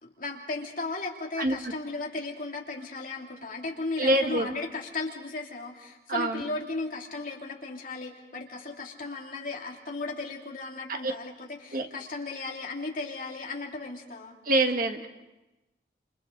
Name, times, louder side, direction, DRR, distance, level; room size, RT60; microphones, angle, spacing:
voice 1, 0.0-14.3, left 3 dB, 50° left, -1 dB, 2.9 m, -36 dB
voice 2, 4.0-4.5 6.1-6.4 11.7-11.8 14.5-15.1, right 1 dB, 50° right, 5 dB, 1.5 m, -25 dB
29.0 x 27.5 x 3.9 m, 1.0 s
head